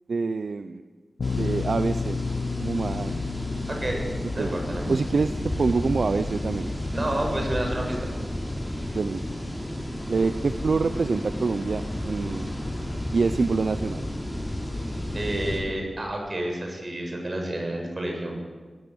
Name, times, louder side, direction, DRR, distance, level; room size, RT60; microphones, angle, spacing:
voice 1, 0.1-0.8 1.3-2.2 2.6-3.1 4.4-4.6 4.9-5.3 5.6-6.7 8.9-9.2 10.1-12.5 13.1-14.1, right 4 dB, 70° right, 10 dB, 0.7 m, -26 dB
Bass guitar, 1.2-7.4, left 5 dB, 85° left, 1.0 m, -33 dB
sound 1, 1.2-15.6, left 1 dB, 10° left, 6.8 m, -32 dB
voice 2, 3.7-4.9 6.9-8.1 8.7-9.0 15.1-18.5, right 1 dB, 40° right, 2 dB, 7.2 m, -30 dB
21.5 x 19.0 x 8.0 m, 1.4 s
wide cardioid pair, 80°, 0 cm